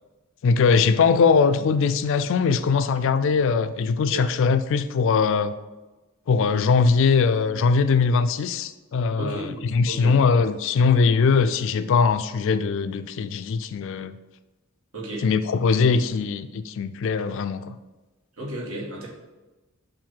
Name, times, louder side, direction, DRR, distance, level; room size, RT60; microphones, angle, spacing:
voice 1, 0.4-5.5 6.3-9.4 9.7-14.1 15.2-17.8, left 5 dB, 60° left, 12 dB, 0.3 m, -21 dB
voice 2, 9.2-10.1 14.9-15.2 18.4-19.1, right 1 dB, 75° right, -3 dB, 1.6 m, -33 dB
7.4 x 2.6 x 5.7 m, 1.1 s
head